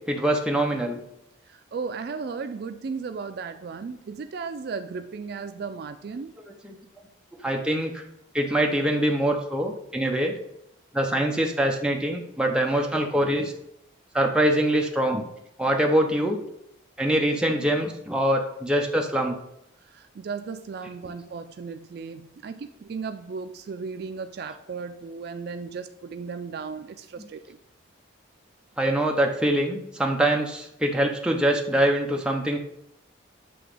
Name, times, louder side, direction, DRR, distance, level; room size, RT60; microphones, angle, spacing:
voice 1, 0.1-1.0 6.6-6.8 7.4-8.0 8.3-10.3 10.9-13.5 14.1-15.2 15.6-16.4 17.0-19.4 27.2-27.3 28.8-32.6, right 1 dB, 5° right, 1 dB, 0.6 m, -24 dB
voice 2, 1.5-6.3 19.9-27.6, right 5 dB, 50° right, 8 dB, 0.3 m, -35 dB
7.8 x 3.0 x 4.9 m, 0.80 s
head